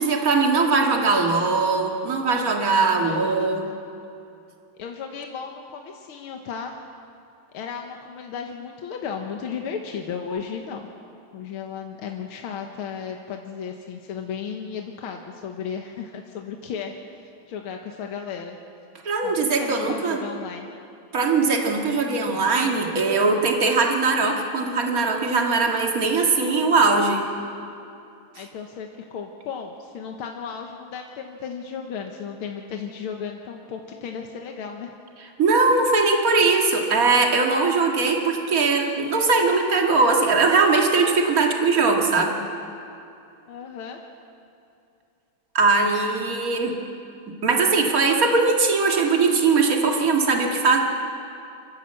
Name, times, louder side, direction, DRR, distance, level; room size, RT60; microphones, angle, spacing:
voice 1, 0.0-3.6 19.0-20.2 21.1-27.3 35.4-42.3 45.5-46.8 47.3-50.8, right 4 dB, 45° right, 1 dB, 2.3 m, -20 dB
voice 2, 3.0-3.7 4.8-6.8 7.5-10.9 11.3-18.6 19.2-20.7 28.4-34.9 43.5-44.0, left 6 dB, 85° left, 3 dB, 2.0 m, -35 dB
26.0 x 14.0 x 7.7 m, 2.6 s
omnidirectional pair, 2.3 m